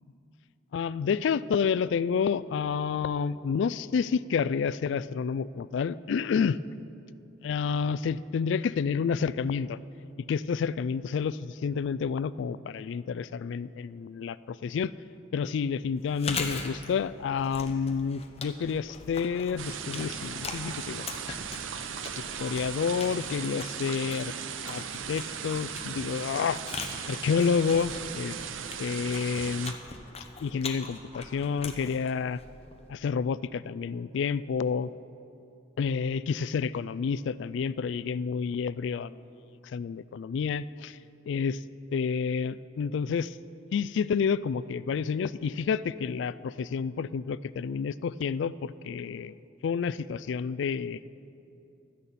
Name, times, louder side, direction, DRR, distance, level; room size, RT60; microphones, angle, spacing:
voice 1, 0.7-6.6 7.4-9.8 10.3-14.9 15.3-21.4 22.2-24.3 24.6-26.6 27.1-28.4 28.8-29.8 30.4-32.4 32.9-34.9 35.8-39.2 39.6-41.0 41.3-41.6 41.9-43.4 43.7-49.4 49.6-51.0, left 6 dB, 65° left, 18 dB, 0.3 m, -29 dB
Chewing mastication, 16.0-32.9, left 4 dB, 30° left, 1.0 m, -41 dB
sound 1, 19.6-29.7, right 7 dB, 85° right, 0.6 m, -37 dB
16.0 x 13.0 x 4.2 m, 2.8 s
head